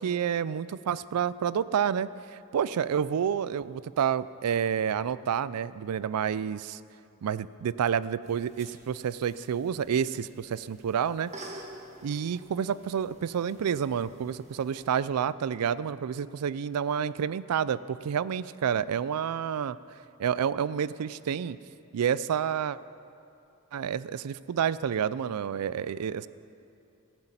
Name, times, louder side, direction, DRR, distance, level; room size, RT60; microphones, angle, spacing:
voice 1, 0.0-6.8 7.2-11.3 12.0-19.8 20.2-21.6 21.9-22.8 23.7-26.3, right 8 dB, 85° right, 18 dB, 0.4 m, -29 dB
sound 1, 8.2-15.0, right 1 dB, 30° right, 1.5 m, -49 dB
15.0 x 8.1 x 8.9 m, 2.7 s
head